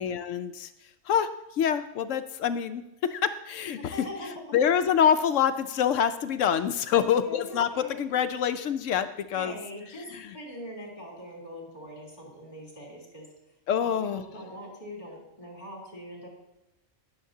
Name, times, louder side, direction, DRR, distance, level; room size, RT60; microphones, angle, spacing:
voice 1, 0.0-3.9 4.2-9.6 10.0-10.4 13.7-14.2, left 8 dB, 75° left, 10 dB, 0.9 m, -26 dB
voice 2, 3.8-4.3 6.9-8.2 9.3-10.1 10.3-13.3 13.8-16.3, left 1 dB, 35° left, -3 dB, 3.1 m, -42 dB
19.5 x 7.1 x 2.7 m, 0.92 s
omnidirectional pair, 1.4 m